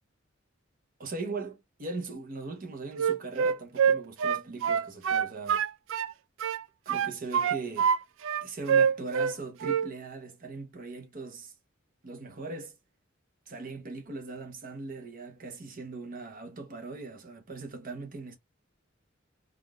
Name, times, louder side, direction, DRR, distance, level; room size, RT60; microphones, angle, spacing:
voice 1, 1.0-5.6 6.9-7.9 8.4-11.5 12.0-12.8 13.5-18.4, right 3 dB, 45° right, 0.8 m, -40 dB
Wind instrument woodwind instrument, 2.9-6.1 6.4-8.0 8.2-9.4 9.6-9.9, right 7 dB, 70° right, 0.3 m, -25 dB
3.6 x 2.4 x 2.2 m
head